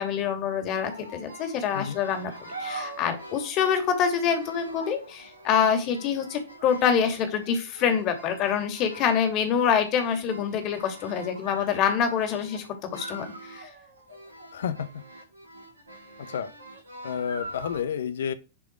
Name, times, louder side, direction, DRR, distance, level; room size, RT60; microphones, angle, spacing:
voice 1, 0.0-2.3 2.6-12.6 12.9-13.7, left 7 dB, 40° left, 2.6 m, -26 dB
sound 1, 0.8-17.8, right 1 dB, 80° right, 3.6 m, -43 dB
voice 2, 14.5-15.0 16.2-16.5 17.0-18.3, left 8 dB, 65° left, 0.8 m, -30 dB
10.0 x 5.1 x 4.7 m
figure-of-eight pair, 90°, 0 cm